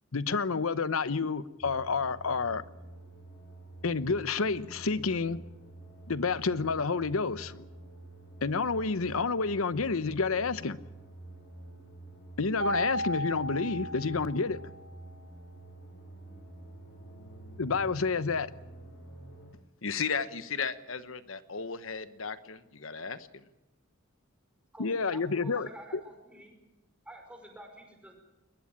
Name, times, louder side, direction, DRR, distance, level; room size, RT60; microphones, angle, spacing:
voice 1, 0.1-2.6 3.8-5.4 6.1-7.7 8.4-10.8 12.4-14.6 17.6-18.5 24.8-26.0, left 4 dB, 90° left, 0.9 m, -29 dB
sound 1, 1.6-19.5, right 2 dB, 40° left, 6.9 m, -49 dB
Mallet percussion, 12.6-14.9, equal, 70° right, 2.1 m, -34 dB
voice 2, 19.8-23.3, left 6 dB, 70° left, 1.2 m, -35 dB
voice 3, 24.7-26.6 27.1-28.1, right 1 dB, 5° right, 5.2 m, -49 dB
21.5 x 20.5 x 8.8 m
head